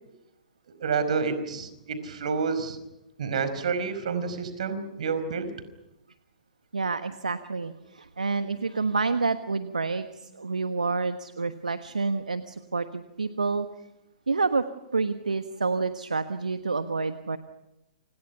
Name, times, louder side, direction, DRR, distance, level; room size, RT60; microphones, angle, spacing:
voice 1, 0.8-2.8 3.2-5.5, right 5 dB, 60° right, 11 dB, 5.0 m, -29 dB
voice 2, 6.7-13.7 14.3-14.6 14.9-17.4, right 4 dB, 80° right, 10 dB, 1.3 m, -28 dB
29.5 x 27.0 x 5.8 m, 0.91 s
figure-of-eight pair, 115°, 4 cm